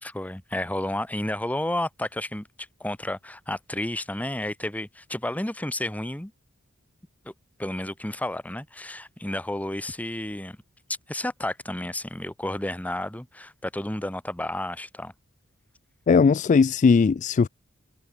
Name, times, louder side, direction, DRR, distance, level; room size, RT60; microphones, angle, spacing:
voice 1, 0.0-2.5 2.8-6.3 7.2-7.3 7.6-10.6 11.1-15.1, left 1 dB, 5° left, 1.0 m, -31 dB
voice 2, 16.1-17.5, left 5 dB, 35° left, 0.3 m, -18 dB
head